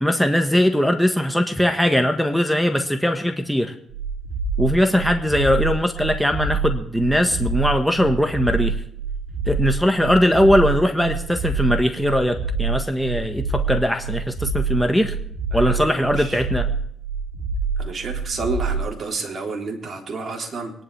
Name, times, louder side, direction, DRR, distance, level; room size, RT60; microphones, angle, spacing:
voice 1, 0.0-3.7 4.6-8.7 9.5-15.1 15.5-16.7, equal, ahead, 5 dB, 1.4 m, -20 dB
sound 1, 3.9-18.9, right 4 dB, 80° right, 2.5 m, -26 dB
voice 2, 15.5-16.4 17.8-20.7, right 3 dB, 45° right, 1 dB, 3.3 m, -30 dB
24.5 x 11.0 x 3.4 m, 0.70 s
cardioid pair, 90°, 0 cm